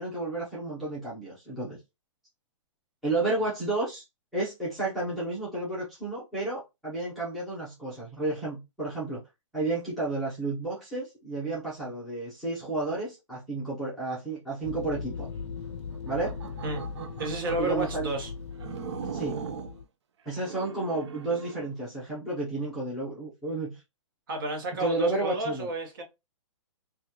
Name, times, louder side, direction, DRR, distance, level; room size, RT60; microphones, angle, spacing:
voice 1, 0.0-1.8 3.0-4.0 4.3-9.2 9.5-15.3 16.0-16.3 17.6-18.1 19.1-19.4 20.2-23.7 24.8-25.7, right 2 dB, ahead, 0.7 m, -31 dB
sound 1, 14.6-19.8, left 5 dB, 65° left, 0.5 m, -39 dB
sound 2, 15.9-18.0 18.6-19.8 20.3-21.7, right 7 dB, 55° right, 0.5 m, -39 dB
voice 2, 17.2-18.3 24.3-26.0, right 2 dB, 40° right, 1.0 m, -31 dB
4.0 x 2.3 x 2.8 m
hypercardioid pair, 175°, 17 cm